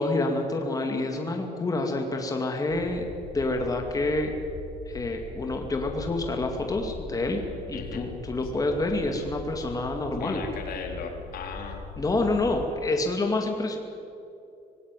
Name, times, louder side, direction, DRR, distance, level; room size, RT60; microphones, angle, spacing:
voice 1, 0.0-3.1 3.3-4.3 4.9-10.4 12.0-13.8, left 2 dB, 20° left, 3 dB, 2.2 m, -28 dB
sound 1, 2.7-12.7, left 3 dB, 80° left, 3.3 m, -41 dB
voice 2, 7.7-8.1 8.4-8.5 10.2-11.9, left 4 dB, 65° left, 3 dB, 3.5 m, -36 dB
19.5 x 16.5 x 9.2 m, 2.7 s
cardioid pair, 110°, 17 cm